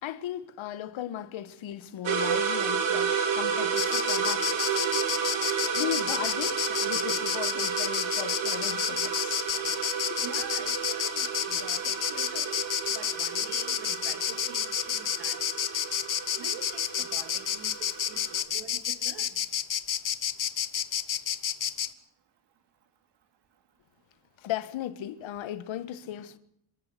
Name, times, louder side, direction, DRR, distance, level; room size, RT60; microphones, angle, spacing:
voice 1, 0.0-4.8 5.7-9.8 10.1-10.2 24.4-26.4, left 11 dB, 80° left, 1.6 m, -37 dB
sound 1, 2.0-18.4, right 6 dB, 80° right, 4.0 m, -31 dB
Insect, 3.8-21.9, left 9 dB, 40° left, 1.2 m, -30 dB
voice 2, 10.2-12.5 12.9-15.5 16.4-19.4, right 8 dB, 60° right, 3.2 m, -46 dB
26.5 x 14.0 x 8.3 m
cardioid pair, 155°, 46 cm